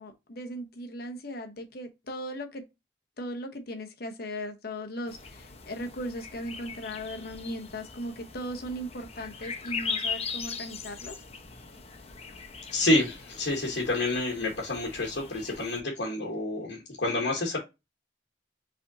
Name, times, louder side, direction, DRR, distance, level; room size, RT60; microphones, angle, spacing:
voice 1, 0.0-2.6 3.2-11.2, equal, 60° left, 1.0 m, -38 dB
sound 1, 5.1-15.8, left 5 dB, 35° left, 0.7 m, -40 dB
voice 2, 12.7-17.6, left 2 dB, 80° left, 1.3 m, -28 dB
5.0 x 3.5 x 2.7 m
head